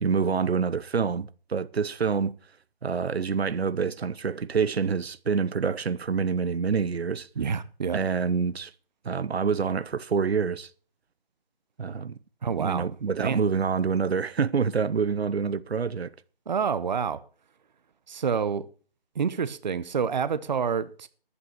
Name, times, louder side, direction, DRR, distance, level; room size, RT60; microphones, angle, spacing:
voice 1, 0.0-2.3 2.8-7.3 7.9-8.7 9.0-10.7 11.8-12.2 12.5-16.1, right 5 dB, 85° right, 0.9 m, -26 dB
voice 2, 7.4-8.0 12.4-12.9 13.2-13.4 16.5-17.2 18.1-18.7 19.2-21.1, right 6 dB, 45° right, 0.8 m, -28 dB
11.0 x 8.2 x 6.5 m
figure-of-eight pair, 165°, 31 cm